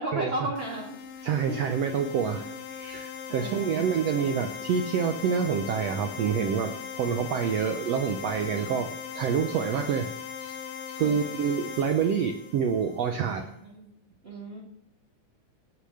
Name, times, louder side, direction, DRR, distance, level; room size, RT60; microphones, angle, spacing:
voice 1, 0.0-1.6 2.3-2.5 3.3-4.2 11.0-11.2 13.3-13.9 14.2-14.6, right 1 dB, 25° right, -3 dB, 1.7 m, -36 dB
sound 1, 0.6-13.3, left 7 dB, 65° left, 1.8 m, -39 dB
voice 2, 1.2-10.1 10.4-10.6 10.9-13.5, right 7 dB, 75° right, 6 dB, 1.5 m, -27 dB
17.5 x 6.8 x 6.4 m, 0.77 s
omnidirectional pair, 3.8 m